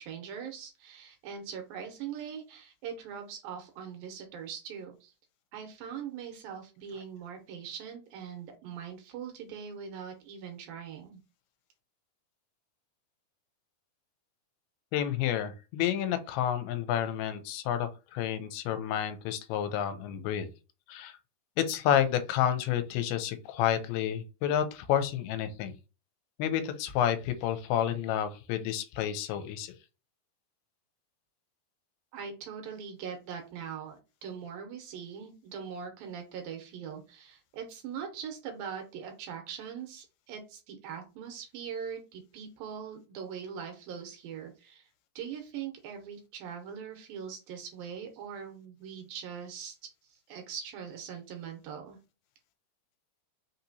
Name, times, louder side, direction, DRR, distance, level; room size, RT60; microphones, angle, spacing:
voice 1, 0.0-5.1 5.5-11.2 32.1-34.0 34.2-44.9 45.2-49.8 50.0-52.0, right 7 dB, 75° right, 2.4 m, -41 dB
voice 2, 14.9-20.5 20.9-21.2 21.6-25.7 26.4-29.7, left 10 dB, 85° left, 2.5 m, -30 dB
5.7 x 2.8 x 2.7 m
omnidirectional pair, 4.5 m